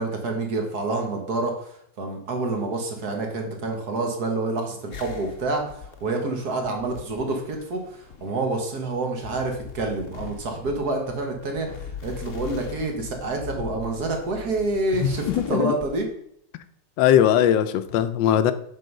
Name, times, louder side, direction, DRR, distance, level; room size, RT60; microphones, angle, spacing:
voice 1, 0.0-1.5 2.0-5.6 6.0-11.7 12.0-15.2 15.5-16.1, right 2 dB, 60° right, 2 dB, 1.7 m, -27 dB
sound 1, 4.9-16.1, left 7 dB, 55° left, 1.0 m, -41 dB
voice 2, 14.9-15.8 17.0-18.5, left 10 dB, 80° left, 12 dB, 1.3 m, -20 dB
8.3 x 3.9 x 5.3 m, 0.69 s
omnidirectional pair, 2.0 m